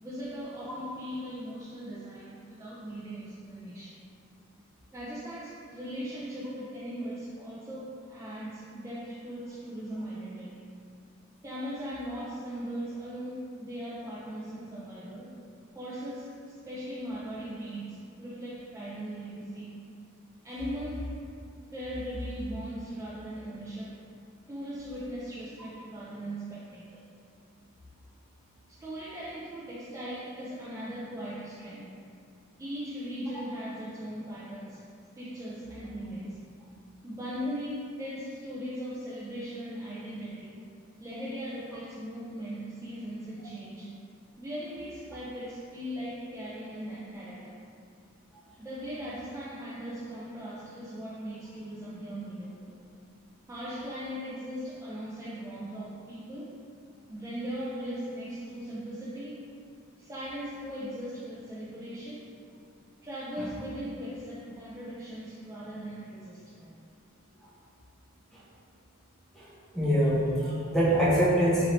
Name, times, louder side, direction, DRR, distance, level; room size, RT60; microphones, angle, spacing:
voice 1, 0.0-4.0 4.9-10.6 11.4-15.3 15.8-19.8 20.4-21.1 21.7-24.0 24.5-27.0 28.7-32.0 32.6-34.8 35.2-36.5 37.0-40.6 41.0-43.9 44.4-47.6 48.6-52.7 53.5-56.6 57.1-59.5 60.0-62.4 63.0-66.7, equal, 15° right, -10 dB, 0.4 m, -39 dB
voice 2, 69.3-71.7, equal, ahead, -9 dB, 0.8 m, -25 dB
4.1 x 2.7 x 3.1 m, 2.4 s
head